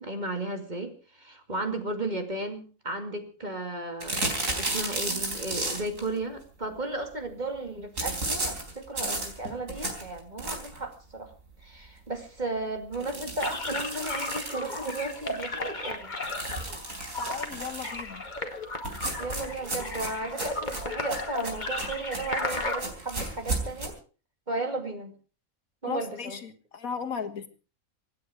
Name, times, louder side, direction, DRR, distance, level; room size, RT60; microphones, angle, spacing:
voice 1, 0.0-4.2 4.5-11.3 11.6-16.2 19.2-24.0 24.5-25.1 25.8-26.4, right 2 dB, 30° right, 5 dB, 2.5 m, -34 dB
sound 1, 4.0-6.1 8.0-10.9 11.3-11.4 11.8-11.9 12.1-12.2 12.9-15.4 16.2-18.0 18.8-23.9, right 2 dB, 65° right, 4.2 m, -34 dB
sound 2, 13.4-22.8, left 2 dB, 30° left, 2.2 m, -35 dB
voice 2, 17.2-18.2 25.9-27.5, left 5 dB, 75° left, 6 dB, 2.0 m, -35 dB
25.5 x 9.5 x 4.9 m, 0.36 s
omnidirectional pair, 1.5 m